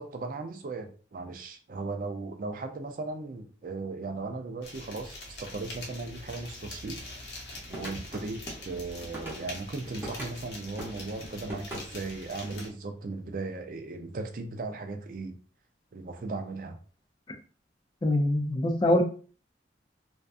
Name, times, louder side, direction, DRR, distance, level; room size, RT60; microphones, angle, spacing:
voice 1, 0.0-7.0 7.7-15.4 15.9-16.8, right 3 dB, 50° right, 0.4 m, -37 dB
sound 1, 4.6-12.7, left 2 dB, 65° left, 0.8 m, -44 dB
sound 2, 7.6-10.4 10.8-12.7, right 1 dB, 15° right, 0.8 m, -41 dB
voice 2, 18.0-19.0, left 1 dB, 25° left, 0.3 m, -24 dB
2.5 x 2.2 x 2.4 m
head